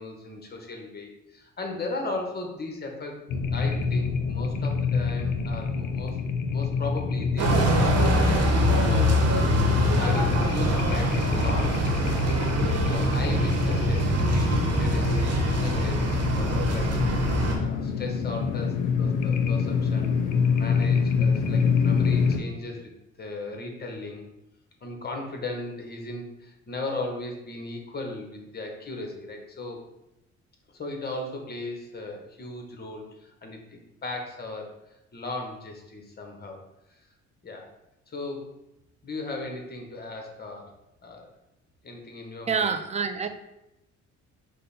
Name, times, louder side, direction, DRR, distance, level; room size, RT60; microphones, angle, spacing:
voice 1, 0.0-6.2 6.5-8.4 8.8-12.1 12.4-17.0 17.5-22.8 23.2-24.3 24.8-29.8 30.7-34.7 35.1-36.6 36.9-37.0 37.4-37.7 38.1-38.5 39.0-40.7 41.0-41.3 41.8-42.8, left 2 dB, 35° left, 2 dB, 1.0 m, -37 dB
sound 1, 3.3-22.4, left 5 dB, 80° left, 0.6 m, -27 dB
sound 2, 7.4-17.6, equal, 55° right, 1.0 m, -23 dB
voice 2, 42.5-43.3, right 6 dB, 25° right, 9 dB, 0.4 m, -26 dB
5.2 x 2.1 x 4.1 m, 0.89 s
cardioid pair, 90°, 30 cm